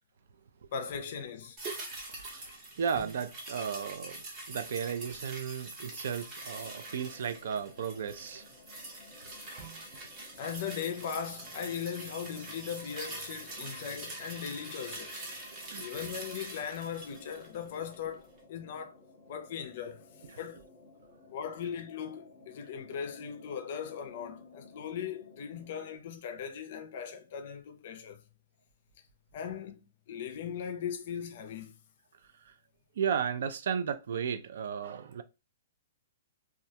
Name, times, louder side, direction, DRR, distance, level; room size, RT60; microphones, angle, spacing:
voice 1, 0.7-1.6 10.4-19.0 19.3-20.1 20.4-20.6 21.3-28.2 29.3-31.7, left 7 dB, 40° left, 0.4 m, -39 dB
sound 1, 1.6-18.1 18.4-18.5, right 2 dB, 20° right, 0.7 m, -44 dB
voice 2, 2.1-2.4 2.8-8.5 9.5-9.7 15.7-15.9 32.5-32.6 33.0-35.2, right 7 dB, 60° right, 0.3 m, -34 dB
sound 2, 6.5-26.0, left 3 dB, 20° left, 0.9 m, -57 dB
2.3 x 2.1 x 2.7 m
hypercardioid pair, 170°, 0 cm